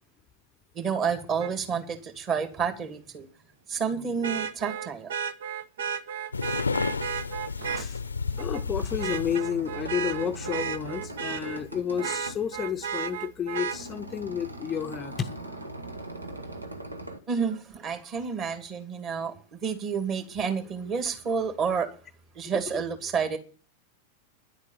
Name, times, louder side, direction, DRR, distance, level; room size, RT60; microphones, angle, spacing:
voice 1, 0.7-3.3 3.7-5.1 17.3-21.9 22.3-23.4, right 6 dB, 30° right, 2.3 m, -30 dB
Vehicle horn car horn honking, 1.4-1.5 4.2-7.9 8.4-8.6 9.0-11.6 12.0-13.8 15.6-15.7, right 8 dB, 60° right, 0.8 m, -33 dB
sound 1, 6.3-9.4, left 4 dB, 80° left, 0.7 m, -31 dB
voice 2, 8.4-15.3 22.5-22.6, left 8 dB, 25° left, 0.6 m, -31 dB
sound 2, 8.8-17.2, right 1 dB, 85° right, 1.5 m, -40 dB
10.5 x 8.1 x 8.6 m
figure-of-eight pair, 90°, 0 cm